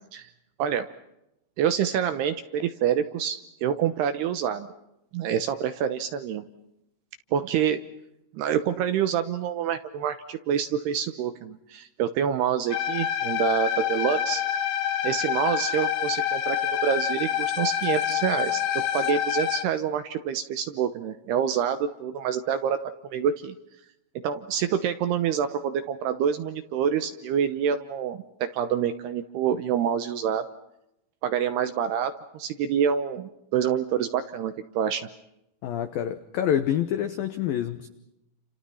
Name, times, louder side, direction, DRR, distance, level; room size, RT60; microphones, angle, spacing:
voice 1, 1.6-4.7 5.1-6.4 7.3-7.8 8.3-14.4 15.0-22.8 23.1-23.6 24.2-30.4 31.2-35.1, right 8 dB, 75° right, 10 dB, 2.5 m, -27 dB
sound 1, 12.7-19.6, left 10 dB, 70° left, 2.0 m, -27 dB
voice 2, 35.6-37.9, left 10 dB, 85° left, 10 dB, 2.0 m, -27 dB
29.5 x 28.0 x 5.6 m, 0.86 s
omnidirectional pair, 5.8 m